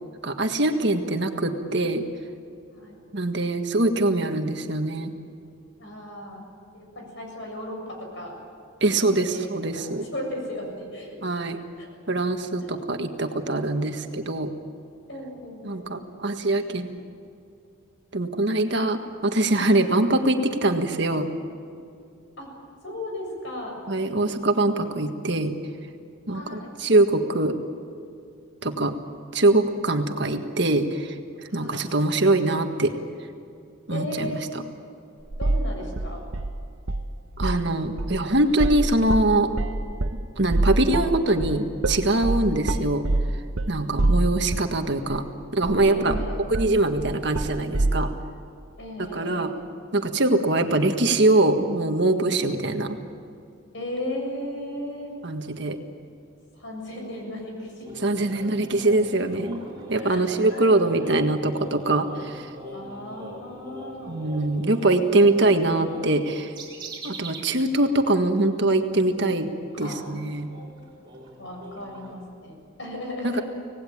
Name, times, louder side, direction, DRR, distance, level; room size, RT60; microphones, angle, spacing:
voice 1, 0.2-2.0 3.1-5.1 8.8-10.1 11.2-11.6 12.1-14.5 15.6-17.0 18.1-21.3 23.9-25.5 26.3-27.5 28.6-28.9 29.3-31.1 31.5-32.9 33.9-34.4 37.4-39.5 40.4-43.1 43.7-45.2 45.5-46.1 46.5-48.1 49.1-49.5 49.9-53.0 55.2-55.8 58.0-59.6 59.9-62.5 64.1-66.5 67.0-69.5 69.8-70.5 73.2-73.4, right 2 dB, 55° right, 5 dB, 1.7 m, -23 dB
voice 2, 5.8-6.4 6.7-8.3 9.0-11.2 11.8-11.9 12.6-12.9 15.1-15.9 19.8-19.9 22.4-22.5 22.8-23.8 26.3-26.7 31.5-31.8 33.9-34.6 35.4-36.2 45.9-46.5 48.8-49.7 52.4-52.5 53.7-55.1 56.5-58.0 60.0-60.2 60.5-60.7 62.7-64.2 69.7-70.1 71.4-73.4, left 1 dB, 60° left, 1 dB, 7.2 m, -36 dB
sound 1, 35.3-35.7 36.0-37.1 37.3-37.7 38.0-44.8 45.1-45.2 45.6-48.0, right 2 dB, 75° right, 1.0 m, -25 dB
sound 2, 57.8-67.5 67.8-68.0 68.4-72.1, right 1 dB, 20° right, 4.4 m, -42 dB
25.5 x 18.5 x 8.7 m, 2.4 s
head